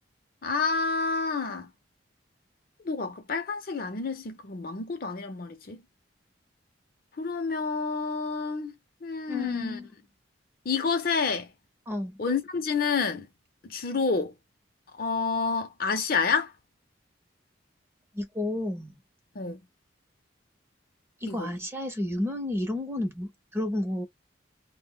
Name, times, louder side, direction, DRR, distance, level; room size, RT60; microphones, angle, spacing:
voice 1, 0.4-1.7 2.8-5.8 7.2-8.7 9.0-9.8 10.7-11.5 12.2-13.3 13.6-14.3 15.0-16.5 19.4-19.6 21.3-21.5, left 4 dB, 50° left, 0.5 m, -29 dB
voice 2, 9.3-9.9 11.9-12.2 18.1-19.0 21.2-24.1, left 1 dB, 10° right, 0.6 m, -31 dB
2.2 x 2.1 x 3.6 m
head